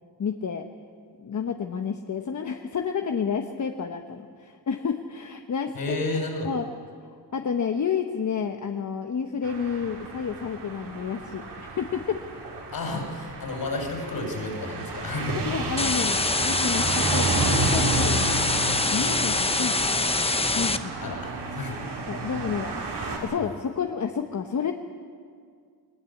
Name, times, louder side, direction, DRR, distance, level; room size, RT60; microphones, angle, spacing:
voice 1, 0.2-0.7 1.2-6.0 6.4-6.7 7.3-12.2 15.4-18.4 18.9-20.1 20.5-20.9 22.1-22.7 23.2-24.7, left 6 dB, 45° left, 5 dB, 1.1 m, -30 dB
voice 2, 5.7-6.5 12.7-15.4 21.0-22.0, left 2 dB, 60° left, 2 dB, 6.1 m, -31 dB
sound 1, 9.4-23.2, right 3 dB, 85° right, 5.0 m, -31 dB
sound 2, 15.8-20.8, left 3 dB, 15° left, 0.9 m, -25 dB
20.5 x 20.5 x 8.5 m, 2.1 s
wide cardioid pair, 120°, 39 cm